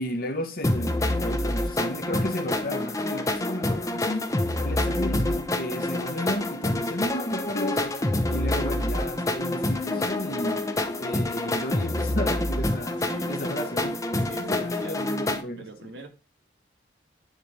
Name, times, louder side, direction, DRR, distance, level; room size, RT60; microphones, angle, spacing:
voice 1, 0.0-8.0 8.3-10.6 11.0-13.0 13.3-15.6, equal, 50° left, 1.3 m, -33 dB
sound 1, 0.6-15.4, left 1 dB, 15° left, 0.7 m, -27 dB
sound 2, 5.0-12.1, left 4 dB, 90° left, 2.2 m, -40 dB
voice 2, 13.0-13.4 14.2-15.2 15.6-16.1, right 2 dB, 75° right, 1.5 m, -42 dB
9.9 x 3.3 x 4.9 m
head